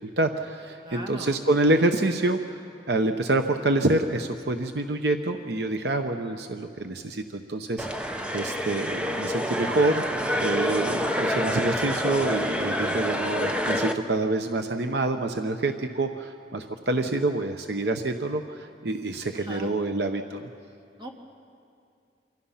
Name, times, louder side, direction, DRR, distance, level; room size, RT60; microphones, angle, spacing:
voice 1, 0.0-2.6 2.9-8.1 8.3-20.5, right 2 dB, 65° right, 6 dB, 0.9 m, -27 dB
voice 2, 0.8-1.4 19.3-19.7 21.0-21.1, equal, 25° right, 0 dB, 2.4 m, -38 dB
sound 1, 7.8-13.9, equal, 5° right, 1.0 m, -27 dB
27.5 x 25.5 x 5.8 m, 2.4 s
head